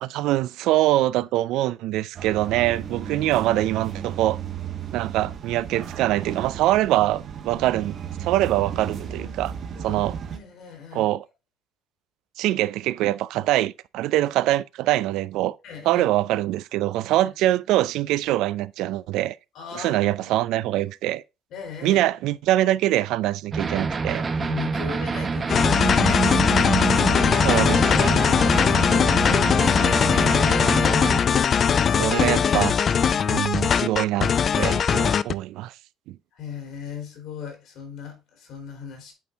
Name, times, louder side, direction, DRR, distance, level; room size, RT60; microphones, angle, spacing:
voice 1, 0.0-4.4 4.9-9.5 9.8-10.2 10.9-11.2 12.4-15.6 15.8-19.4 19.7-21.2 21.8-24.2 27.4-28.2 32.0-32.8 33.2-34.3 34.6-35.7 36.1-36.2, right 15 dB, 75° right, 0.4 m, -24 dB
sound 1, 2.2-10.4, right 8 dB, 45° right, 1.2 m, -34 dB
voice 2, 8.7-10.0 10.3-11.1 15.6-16.0 17.2-17.3 19.5-20.4 21.5-22.0 24.4-26.3 28.4-30.8 31.4-32.1 36.3-39.1, left 6 dB, 60° left, 3.2 m, -38 dB
sound 2, 23.5-31.2, right 4 dB, 25° right, 0.7 m, -26 dB
sound 3, 25.5-35.3, left 7 dB, 35° left, 0.3 m, -20 dB
8.3 x 4.4 x 3.5 m
cardioid pair, 130°, 0 cm